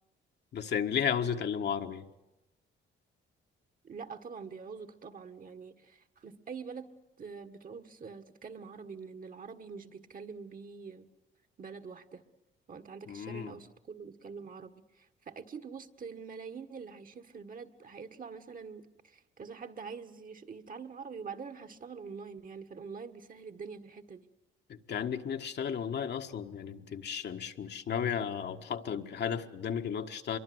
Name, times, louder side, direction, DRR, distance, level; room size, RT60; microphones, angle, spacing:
voice 1, 0.5-2.1 13.1-13.5 24.7-30.4, left 8 dB, 60° left, 5 dB, 1.5 m, -34 dB
voice 2, 3.8-6.9 7.2-11.1 11.6-12.2 12.7-24.3, right 5 dB, 45° right, 8 dB, 1.7 m, -45 dB
24.5 x 23.0 x 8.0 m, 0.97 s
cardioid pair, 90°, 20 cm